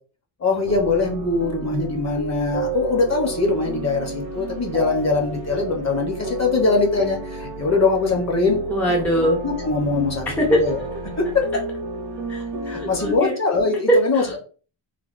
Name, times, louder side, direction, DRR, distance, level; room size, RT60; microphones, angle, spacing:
voice 1, 0.4-8.6 9.2-10.8 11.2-11.4 12.7-14.4, left 3 dB, 35° left, 1 dB, 0.7 m, -22 dB
sound 1, 0.6-13.2, right 3 dB, 65° right, 0.7 m, -32 dB
voice 2, 8.7-9.4 10.4-10.6 12.3-13.4 13.9-14.4, equal, 5° left, -2 dB, 0.3 m, -21 dB
3.3 x 2.1 x 2.4 m, 0.39 s
wide cardioid pair, 165°, 50 cm